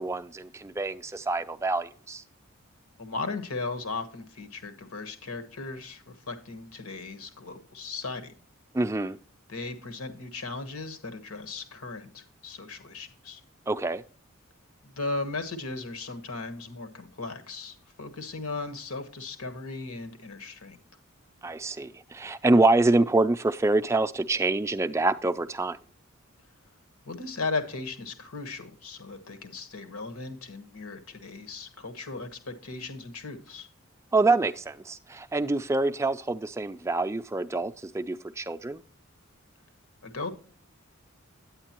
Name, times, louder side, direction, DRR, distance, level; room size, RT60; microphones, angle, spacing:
voice 1, 0.0-2.2 8.7-9.2 13.7-14.0 21.4-25.8 34.1-38.8, right 2 dB, 15° right, 0.3 m, -26 dB
voice 2, 3.0-8.3 9.5-13.4 14.8-20.8 27.1-33.7 40.0-40.3, left 3 dB, 85° left, 1.4 m, -37 dB
9.3 x 8.9 x 2.9 m
head